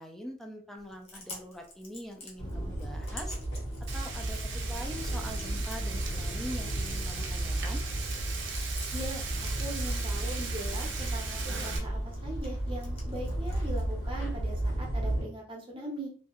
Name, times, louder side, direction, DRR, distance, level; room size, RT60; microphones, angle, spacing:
voice 1, 0.0-3.4 3.9-4.4 4.7-7.8, equal, ahead, 2 dB, 0.3 m, -43 dB
Chewing mastication, 0.8-14.8, left 2 dB, 35° left, 0.7 m, -52 dB
sound 1, 2.4-15.2, right 1 dB, 90° left, 1.5 m, -33 dB
Frying (food), 3.9-11.8, right 5 dB, 75° right, 0.5 m, -39 dB
voice 2, 8.9-16.1, right 1 dB, 30° right, -1 dB, 0.7 m, -40 dB
2.7 x 2.1 x 2.3 m, 0.44 s
head